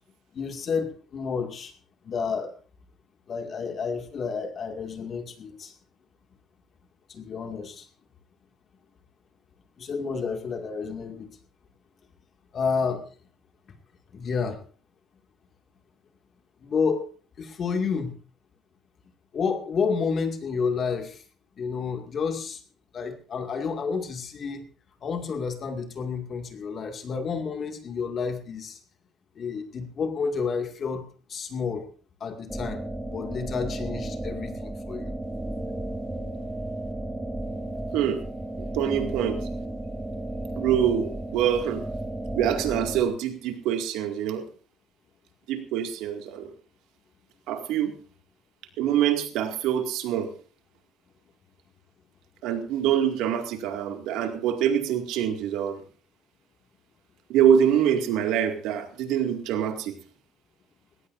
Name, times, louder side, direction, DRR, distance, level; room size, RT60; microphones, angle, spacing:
voice 1, 0.3-1.7 2.0-2.5 3.3-5.7 7.1-7.9 9.8-11.3 12.5-13.0 14.1-14.6 16.6-17.1 17.4-18.2 19.3-21.2 21.6-22.6 22.9-24.6 25.0-28.8 29.4-31.9 32.2-35.1, left 5 dB, 40° left, 5 dB, 2.2 m, -30 dB
sound 1, 32.5-43.0, right 1 dB, 5° right, 1.1 m, -33 dB
voice 2, 38.6-39.4 40.6-41.8 42.3-44.4 45.5-46.5 47.5-47.9 48.8-50.3 52.4-55.8 57.3-60.0, right 9 dB, 80° right, 5 dB, 2.3 m, -25 dB
19.0 x 17.5 x 2.7 m, 0.38 s
cardioid pair, 140°, 0 cm